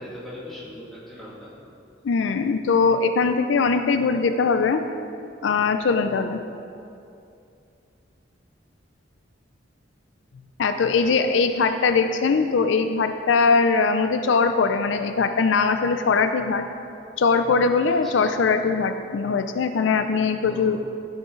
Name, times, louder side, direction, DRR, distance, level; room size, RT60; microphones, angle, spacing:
voice 1, 0.0-1.5 10.9-11.1 11.5-11.6 17.9-18.3 20.4-20.8, left 1 dB, ahead, -9 dB, 2.2 m, -40 dB
voice 2, 2.0-4.8 5.4-6.4 10.6-16.6 17.2-20.8, left 4 dB, 75° left, 8 dB, 0.4 m, -21 dB
12.0 x 6.4 x 3.8 m, 2.6 s
head